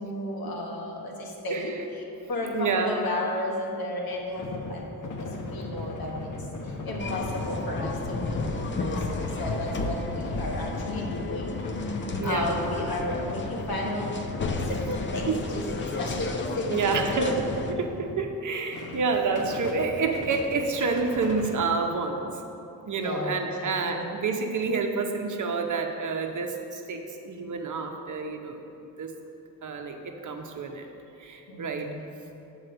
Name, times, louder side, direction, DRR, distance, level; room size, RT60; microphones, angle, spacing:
voice 1, 0.0-6.3 6.6-11.6 12.2-17.7 22.9-24.2 31.5-32.0, left 1 dB, 90° left, -1 dB, 1.4 m, -33 dB
voice 2, 1.5-1.8 2.4-3.0 12.2-12.5 15.3-15.4 16.7-17.4 17.8-22.4 22.8-28.6 29.0-29.1 29.6-30.9 31.2-31.9, right 4 dB, 55° right, 4 dB, 0.8 m, -28 dB
sound 1, 4.1-18.3 18.7-21.6, left 2 dB, 60° left, 0.9 m, -38 dB
sound 2, 7.0-17.7, left 3 dB, 35° left, 0.6 m, -33 dB
7.6 x 4.8 x 6.8 m, 2.8 s
wide cardioid pair, 125°, 35 cm